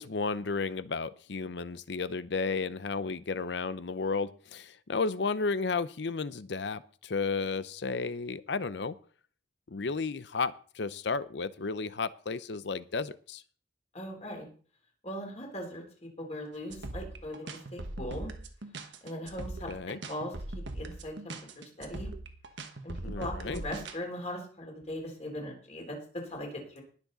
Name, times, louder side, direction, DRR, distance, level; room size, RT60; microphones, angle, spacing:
voice 1, 0.0-9.0 9.7-13.4 19.7-20.0 23.0-23.6, left 4 dB, 70° left, 16 dB, 0.7 m, -33 dB
voice 2, 13.9-14.5 15.0-18.3 19.0-19.7 20.0-20.3 20.7-22.1 22.8-26.8, left 1 dB, 35° left, 1 dB, 3.5 m, -39 dB
sound 1, 16.7-24.0, right 2 dB, 80° right, 1.3 m, -40 dB
20.0 x 7.2 x 4.0 m, 0.43 s
head